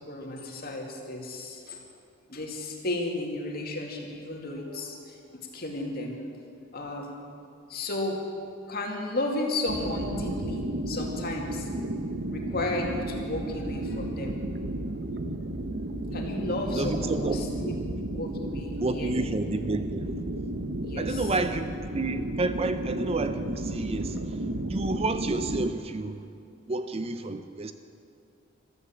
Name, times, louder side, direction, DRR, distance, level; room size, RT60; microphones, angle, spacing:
voice 1, 0.0-1.8 2.3-6.2 6.7-7.2 7.7-8.2 8.7-11.7 12.3-14.4 16.1-17.7 18.1-19.1 20.8-21.2, left 2 dB, 45° left, 1 dB, 2.3 m, -33 dB
sound 1, 9.7-25.7, right 1 dB, 50° right, 0.9 m, -33 dB
voice 2, 16.7-17.4 18.8-20.1 21.0-21.7 21.9-26.3 26.7-27.7, right 2 dB, 30° right, 10 dB, 0.5 m, -30 dB
14.5 x 13.0 x 7.1 m, 2.5 s
head